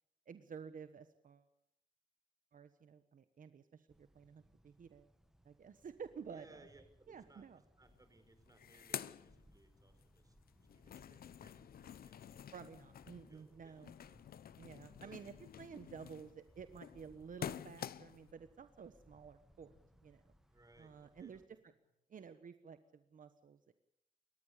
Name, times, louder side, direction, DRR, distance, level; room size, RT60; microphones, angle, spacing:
voice 1, 0.3-1.5 2.5-5.1 5.4-6.7 7.1-7.6 12.5-13.9 14.6-19.7 20.0-20.2 20.8-21.4 22.1-23.7, right 6 dB, 60° right, 10 dB, 1.3 m, -52 dB
sound 1, 3.9-21.5, equal, 5° right, 1.9 m, -68 dB
voice 2, 6.3-7.4 7.8-10.4 10.7-12.5 13.3-14.3 15.0-15.2 20.5-21.4, right 2 dB, 25° right, 8 dB, 5.2 m, -65 dB
sound 2, 7.9-8.0 8.3-10.1 10.4-18.3, left 9 dB, 80° left, 0.8 m, -49 dB
sound 3, 17.2-21.9, left 1 dB, 25° left, 7.9 m, -77 dB
29.0 x 14.0 x 8.5 m, 0.80 s
cardioid pair, 85°, 15 cm